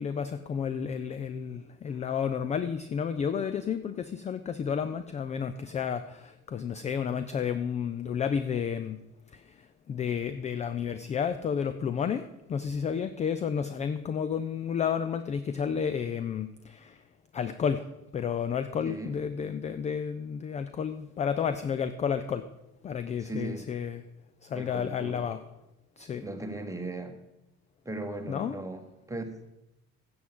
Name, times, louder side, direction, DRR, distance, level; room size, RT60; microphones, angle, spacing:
voice 1, 0.0-9.0 9.3-17.0 17.3-17.9 18.1-22.4 22.8-24.0 24.4-25.4 26.0-26.3 28.3-28.6, left 7 dB, 15° left, 11 dB, 0.3 m, -31 dB
voice 2, 18.8-19.2 23.2-23.7 24.5-25.3 26.2-27.2 27.8-29.5, right 2 dB, 5° right, 5 dB, 1.2 m, -38 dB
15.5 x 7.8 x 3.7 m, 0.92 s
figure-of-eight pair, 50°, 47 cm